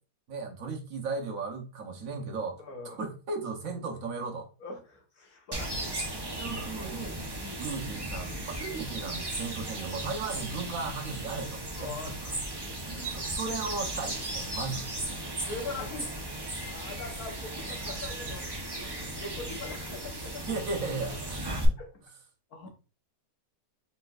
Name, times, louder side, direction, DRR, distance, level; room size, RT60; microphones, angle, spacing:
voice 1, 0.3-4.5 6.3-7.2 7.6-12.4 13.1-14.9 20.5-21.8, right 4 dB, 60° right, 1.1 m, -36 dB
voice 2, 2.6-3.0 4.6-6.0 7.4-7.6 10.3-10.4 11.8-12.2 12.7-13.1 15.2-16.1 16.7-20.4 21.8-21.9 22.5-22.7, left 4 dB, 60° left, 1.6 m, -42 dB
sound 1, 5.5-21.7, right 1 dB, 40° right, 0.3 m, -36 dB
4.4 x 4.1 x 2.4 m
omnidirectional pair, 1.8 m